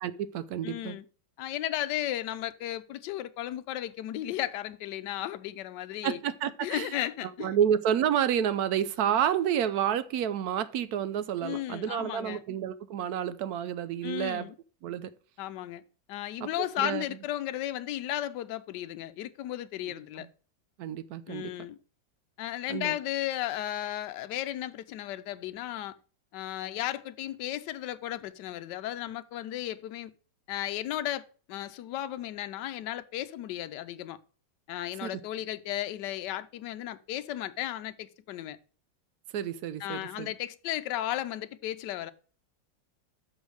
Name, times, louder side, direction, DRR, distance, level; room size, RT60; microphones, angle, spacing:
voice 1, 0.0-1.0 6.0-6.9 7.4-14.5 14.8-15.1 16.4-17.0 20.2-20.3 20.8-21.5 22.7-22.9 35.0-35.2 39.3-40.3, right 9 dB, 70° right, 1.0 m, -30 dB
voice 2, 0.6-1.0 1.4-6.2 6.6-7.6 11.4-12.4 14.0-14.5 15.4-15.8 16.1-20.3 21.3-21.8 22.4-26.0 26.3-30.1 30.5-34.2 34.7-38.6 39.8-42.1, left 13 dB, 75° left, 1.2 m, -35 dB
6.4 x 5.1 x 6.3 m
omnidirectional pair, 2.0 m